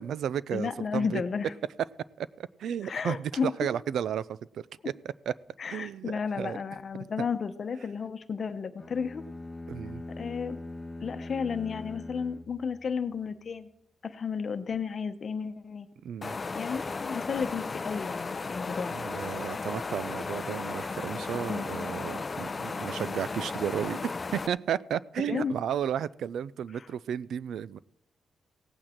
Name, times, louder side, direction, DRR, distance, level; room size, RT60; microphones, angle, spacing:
voice 1, 0.0-1.2 2.2-4.9 5.3-5.4 5.7-6.6 7.2-7.3 9.7-10.0 16.0-16.4 18.9-27.8, right 9 dB, 75° right, 19 dB, 0.4 m, -33 dB
voice 2, 0.5-1.5 2.8-3.5 5.6-9.2 10.2-10.6 11.0-13.7 14.0-15.9 16.5-19.1 21.3-21.9 25.3-25.5 26.7-26.9, left 6 dB, 40° left, 10 dB, 0.9 m, -33 dB
sound 1, 8.8-13.2, left 1 dB, 10° left, 1.0 m, -42 dB
sound 2, 16.2-24.5, left 4 dB, 25° left, 0.5 m, -35 dB
17.0 x 8.7 x 4.4 m, 0.80 s
cardioid pair, 135°, 0 cm